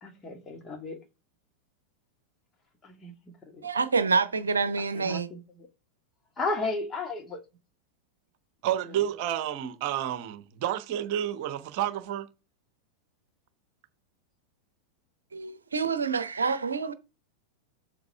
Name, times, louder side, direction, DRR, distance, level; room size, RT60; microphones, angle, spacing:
voice 1, 0.0-1.0 2.8-3.1 3.5-3.7 4.9-5.7 6.4-7.4, left 3 dB, 20° left, 2.0 m, -34 dB
voice 2, 3.6-5.3 15.3-16.9, right 4 dB, 75° right, 0.8 m, -27 dB
voice 3, 8.6-12.3, right 11 dB, 45° right, 1.1 m, -30 dB
8.0 x 7.2 x 3.5 m
figure-of-eight pair, 90°, 0 cm